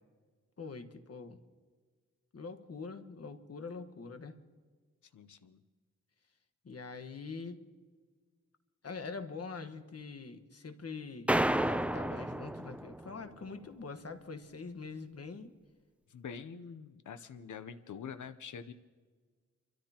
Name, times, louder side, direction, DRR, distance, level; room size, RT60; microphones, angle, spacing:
voice 1, 0.6-1.4 2.3-4.4 6.6-7.6 8.8-11.3 11.6-15.5, left 4 dB, 55° left, 8 dB, 1.4 m, -44 dB
voice 2, 5.1-5.6 16.1-18.7, left 6 dB, 85° left, 11 dB, 0.8 m, -45 dB
sound 1, 11.3-13.3, right 1 dB, 5° right, 0.5 m, -31 dB
29.0 x 13.5 x 2.9 m, 1.5 s
wide cardioid pair, 75°, 29 cm